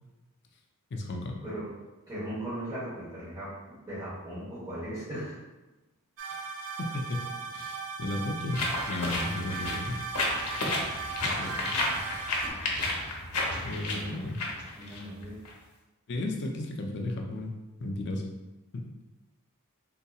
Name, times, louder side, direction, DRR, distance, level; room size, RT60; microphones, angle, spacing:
voice 1, 0.9-1.4 6.8-10.0 11.2-11.7 13.6-14.4 16.1-17.5 17.8-18.2 18.7-18.9, left 2 dB, 50° left, 2 dB, 0.5 m, -34 dB
voice 2, 2.1-3.5 3.9-5.3 13.7-14.3 14.8-15.4, right 1 dB, 20° right, -13 dB, 1.1 m, -38 dB
sound 1, 6.2-12.5, right 4 dB, 65° right, 0.5 m, -37 dB
sound 2, 8.5-15.5, left 2 dB, 90° left, 0.7 m, -32 dB
3.7 x 2.8 x 2.3 m, 1.1 s
head